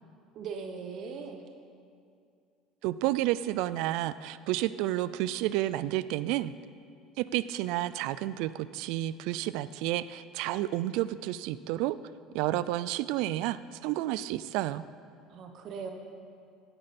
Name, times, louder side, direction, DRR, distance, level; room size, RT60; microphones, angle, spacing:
voice 1, 0.3-1.4 15.3-15.9, right 5 dB, 45° right, 5 dB, 0.9 m, -39 dB
voice 2, 2.8-6.5 7.2-12.0 12.3-14.8, right 15 dB, 70° right, 16 dB, 0.3 m, -30 dB
16.5 x 8.9 x 4.2 m, 2.4 s
cardioid pair, 155°, 0 cm